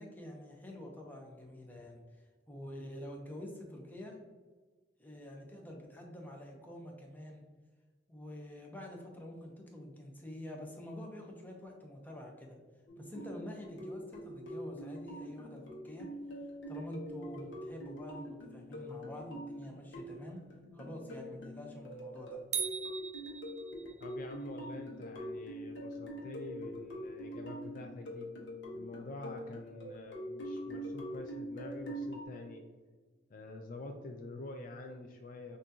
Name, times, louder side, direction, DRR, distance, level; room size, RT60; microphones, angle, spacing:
voice 1, 0.0-2.0 2.5-4.2 5.0-7.4 8.1-12.6 13.0-16.1 16.7-20.4 20.7-22.4, left 1 dB, 10° left, 0 dB, 0.7 m, -47 dB
sound 1, 12.9-32.2, equal, 80° left, 1.0 m, -44 dB
sound 2, 22.5-24.1, right 8 dB, 40° right, 0.3 m, -39 dB
voice 2, 24.0-28.3 28.7-32.7 33.3-35.6, left 2 dB, 50° left, 4 dB, 0.4 m, -47 dB
5.9 x 2.6 x 2.7 m, 1.3 s
head